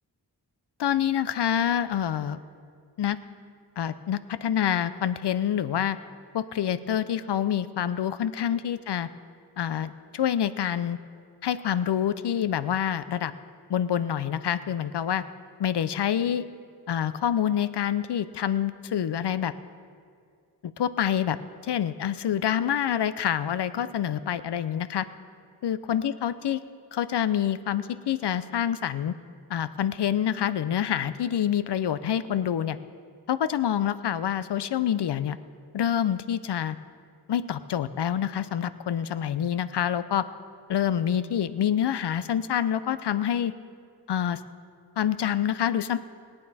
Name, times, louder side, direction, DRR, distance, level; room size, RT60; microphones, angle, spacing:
voice 1, 0.8-2.4 3.0-3.2 3.8-6.0 6.3-9.1 9.6-11.0 11.4-13.3 13.7-15.2 15.6-16.4 16.9-19.5 20.6-21.4 21.6-25.1 25.6-26.6 26.9-29.1 29.5-32.8 33.3-35.4 35.7-36.8 37.3-40.2 40.7-43.5 44.1-44.4 45.0-46.0, left 9 dB, 70° left, 14 dB, 0.6 m, -27 dB
20.0 x 9.0 x 4.2 m, 2.2 s
cardioid pair, 60°, 42 cm